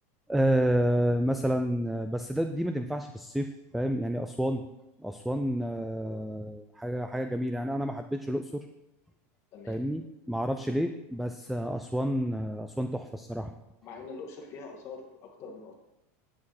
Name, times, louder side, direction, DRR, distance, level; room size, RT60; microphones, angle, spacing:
voice 1, 0.3-4.6 5.0-8.7 9.7-10.0 10.3-13.5, equal, ahead, 7 dB, 0.4 m, -29 dB
voice 2, 9.5-9.8 13.8-15.7, left 4 dB, 35° left, 1 dB, 2.0 m, -44 dB
9.6 x 8.6 x 4.2 m, 0.91 s
supercardioid pair, 160°, 8 cm